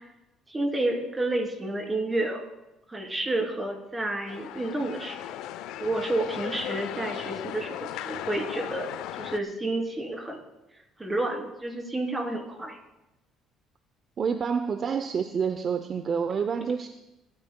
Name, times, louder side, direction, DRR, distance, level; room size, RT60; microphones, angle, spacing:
voice 1, 0.5-2.4 2.9-5.2 5.8-8.9 9.1-10.4 11.0-12.8, right 2 dB, 20° right, 0 dB, 3.3 m, -30 dB
sound 1, 4.3-9.4, left 12 dB, 80° left, 0.4 m, -37 dB
voice 2, 14.2-16.9, right 6 dB, 45° right, 9 dB, 0.6 m, -28 dB
28.5 x 9.6 x 2.3 m, 0.94 s
supercardioid pair, 85°, 0 cm